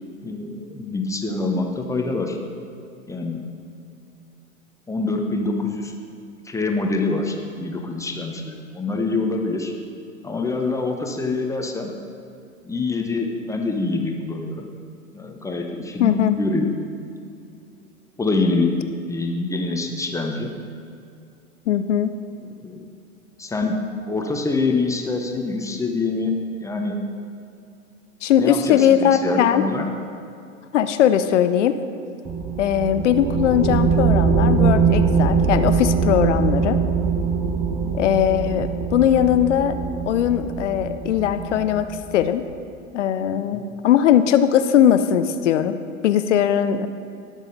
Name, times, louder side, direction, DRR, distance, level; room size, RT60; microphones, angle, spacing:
voice 1, 0.2-2.4 3.1-3.4 4.9-5.9 6.4-9.7 10.2-11.9 12.6-14.6 15.1-16.7 18.2-18.8 19.1-20.5 22.4-22.9 23.4-23.8 24.1-26.3 26.6-27.0 28.4-29.9 37.7-38.0 43.3-43.6 46.7-46.9, left 3 dB, 5° left, 2 dB, 0.9 m, -25 dB
voice 2, 16.0-16.4 21.7-22.1 28.2-29.6 30.7-31.8 32.6-36.8 37.9-39.8 40.1-41.9 42.1-42.4 42.9-45.8 46.0-46.9, left 10 dB, 55° left, 10 dB, 0.7 m, -19 dB
sound 1, 32.2-42.3, right 5 dB, 10° right, 0.3 m, -22 dB
19.0 x 6.5 x 4.0 m, 2.5 s
figure-of-eight pair, 100°, 42 cm